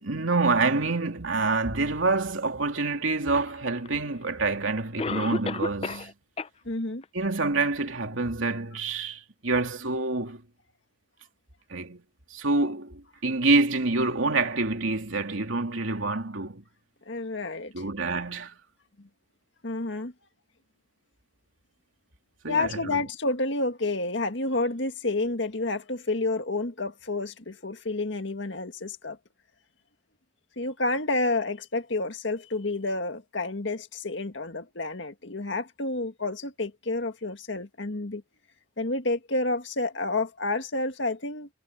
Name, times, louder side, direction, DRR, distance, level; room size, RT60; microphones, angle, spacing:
voice 1, 0.0-6.1 7.1-10.4 11.7-12.0 12.3-16.6 17.7-18.5 22.4-23.0, right 3 dB, 85° right, 2.9 m, -27 dB
Cough, 3.9-4.0 5.0-6.1 6.4-6.5 7.0-7.1 7.7-7.8, left 3 dB, 30° left, 0.5 m, -30 dB
voice 2, 6.7-7.0 17.1-17.7 19.6-20.1 22.5-29.2 30.6-38.2 38.8-41.5, left 2 dB, 65° left, 1.9 m, -29 dB
head